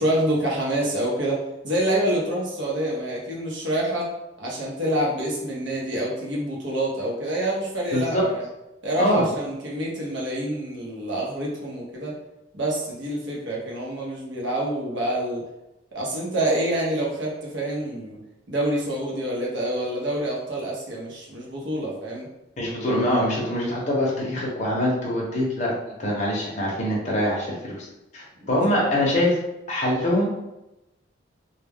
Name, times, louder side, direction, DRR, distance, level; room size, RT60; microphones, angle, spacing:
voice 1, 0.0-4.1 4.4-8.4 8.8-12.2 12.5-15.5 15.9-18.2 18.5-22.3 28.4-28.9, right 1 dB, 65° right, -4 dB, 0.8 m, -27 dB
voice 2, 7.9-8.2 9.0-9.2 22.6-25.7 26.0-27.9 28.1-29.4 29.7-30.3, left 1 dB, 35° left, -4 dB, 0.6 m, -24 dB
2.2 x 2.2 x 3.4 m, 0.94 s
head